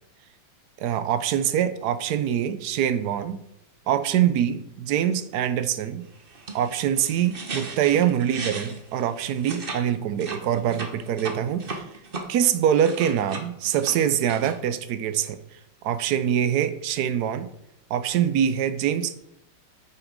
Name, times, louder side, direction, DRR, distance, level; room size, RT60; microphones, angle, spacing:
voice 1, 0.8-3.4 3.9-6.1 6.5-11.9 12.3-15.4 15.8-17.5 17.9-19.1, right 9 dB, 70° right, 11 dB, 1.0 m, -24 dB
sound 1, 6.2-9.8 10.1-12.2 12.6-14.5, right 3 dB, 35° right, 0.9 m, -36 dB
9.3 x 5.8 x 5.1 m, 0.79 s
omnidirectional pair, 2.3 m